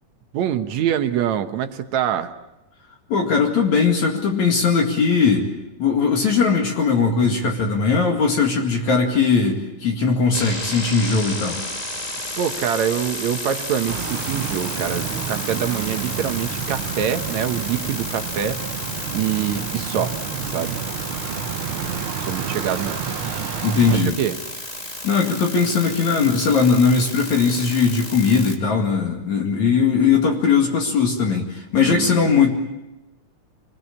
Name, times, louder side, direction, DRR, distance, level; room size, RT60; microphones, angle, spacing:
voice 1, 0.3-2.3 12.4-18.6 19.1-20.1 20.5-20.8 21.6-23.0 23.9-24.4 31.8-32.2, right 9 dB, 65° right, 8 dB, 2.2 m, -25 dB
voice 2, 3.1-5.5 5.8-11.6 23.6-24.2 25.0-32.5, left 5 dB, 60° left, 1 dB, 3.4 m, -19 dB
sound 1, 10.3-28.6, left 1 dB, 25° left, 0.9 m, -32 dB
sound 2, 13.9-24.0, right 8 dB, 80° right, 1.1 m, -30 dB
26.5 x 20.0 x 8.6 m, 0.98 s
omnidirectional pair, 3.9 m